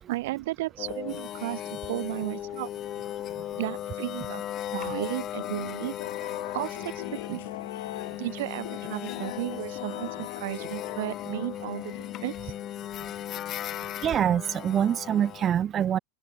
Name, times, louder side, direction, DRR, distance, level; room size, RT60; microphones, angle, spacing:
voice 1, 0.1-2.7 3.6-4.4 4.7-6.0 6.5-7.5 8.2-11.9 12.2-12.5, right 18 dB, 60° right, 1.9 m, -34 dB
sound 1, 0.8-15.5, left 12 dB, 25° left, 0.6 m, -37 dB
sound 2, 5.3-12.7, left 16 dB, 70° left, 1.6 m, -41 dB
voice 2, 14.0-16.0, right 9 dB, 20° right, 0.5 m, -25 dB
open air
supercardioid pair, 175°, 0 cm